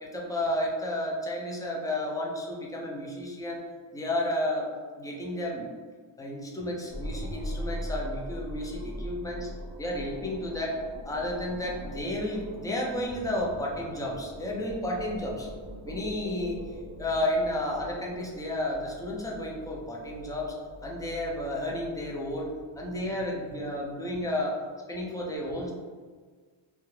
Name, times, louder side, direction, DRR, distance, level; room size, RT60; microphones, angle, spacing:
voice 1, 0.0-3.6 3.9-4.7 5.0-5.7 6.2-9.5 9.8-10.8 11.1-15.5 15.8-16.6 17.0-20.5 20.8-22.5 22.8-24.6 24.9-25.7, left 1 dB, 10° left, -3 dB, 0.3 m, -32 dB
sound 1, 6.9-24.1, equal, 30° left, 0.8 m, -42 dB
2.8 x 2.3 x 3.0 m, 1.6 s
wide cardioid pair, 170°, 48 cm